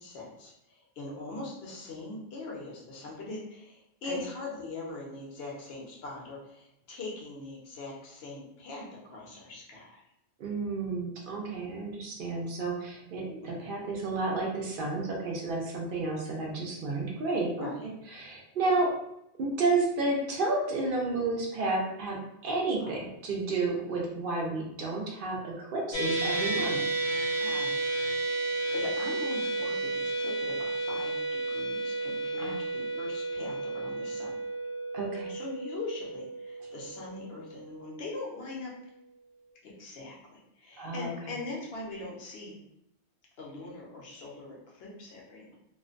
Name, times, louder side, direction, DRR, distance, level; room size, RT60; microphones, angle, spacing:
voice 1, 0.0-10.0 13.4-13.8 17.6-17.9 22.8-23.0 27.4-34.3 35.3-38.7 39.6-42.5 43.4-45.6, left 3 dB, 60° left, -3 dB, 0.9 m, -41 dB
voice 2, 10.4-17.7 18.1-18.9 19.4-26.8 32.4-32.6 34.9-35.3 40.8-41.1, right 3 dB, 60° right, -1 dB, 0.6 m, -31 dB
sound 1, 25.9-38.3, right 2 dB, 80° left, 1.0 m, -32 dB
2.5 x 2.1 x 2.4 m, 0.81 s
omnidirectional pair, 1.3 m